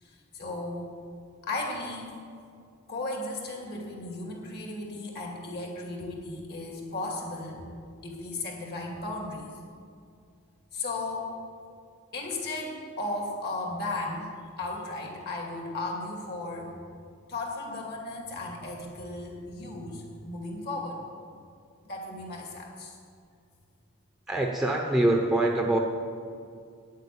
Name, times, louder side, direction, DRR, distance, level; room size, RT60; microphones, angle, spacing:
voice 1, 0.0-1.0 1.4-2.1 2.9-7.6 8.0-9.5 10.7-11.3 12.1-16.7 17.3-21.0 21.8-23.0, left 2 dB, 50° left, 0 dB, 2.5 m, -35 dB
voice 2, 24.3-25.8, right 1 dB, ahead, 0 dB, 0.7 m, -24 dB
9.7 x 8.3 x 8.5 m, 2.3 s
head